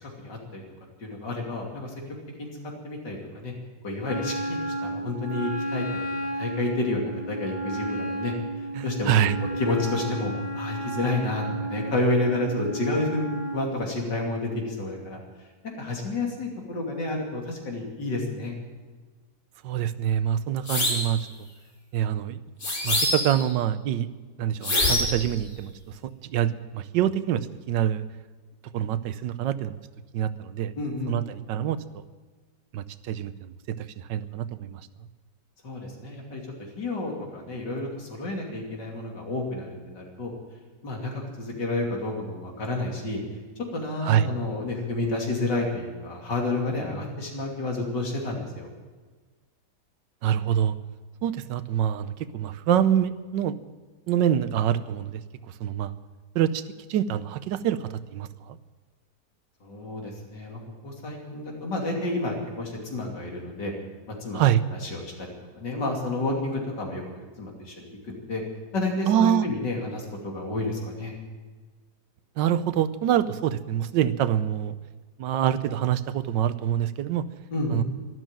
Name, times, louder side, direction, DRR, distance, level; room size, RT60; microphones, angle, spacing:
voice 1, 0.0-0.6 1.0-1.9 2.4-2.5 2.8-3.5 3.8-5.8 6.3-9.1 9.6-18.6 30.8-31.2 35.6-36.4 36.8-40.3 40.8-43.2 43.7-48.7 59.6-63.7 64.1-65.3 65.5-68.4 68.7-71.1 77.5-77.8, left 2 dB, 75° left, 0 dB, 3.5 m, -30 dB
Wind instrument woodwind instrument, 4.0-13.6, right 1 dB, 25° left, 2.3 m, -32 dB
voice 2, 8.7-9.4 19.6-21.3 21.9-22.4 22.8-24.1 24.4-26.0 26.2-28.0 28.7-29.8 30.1-30.7 31.1-32.0 32.7-34.8 44.0-44.3 50.2-50.7 51.2-53.6 54.1-55.9 56.3-56.6 56.9-58.6 64.3-64.6 69.1-69.5 72.4-74.7 75.2-77.2 77.7-77.8, right 10 dB, 85° right, 14 dB, 1.4 m, -25 dB
sound 1, 20.7-21.1 22.6-23.4 24.6-25.2, left 1 dB, 50° left, 3.3 m, -25 dB
12.5 x 12.5 x 9.0 m, 1.4 s
omnidirectional pair, 1.9 m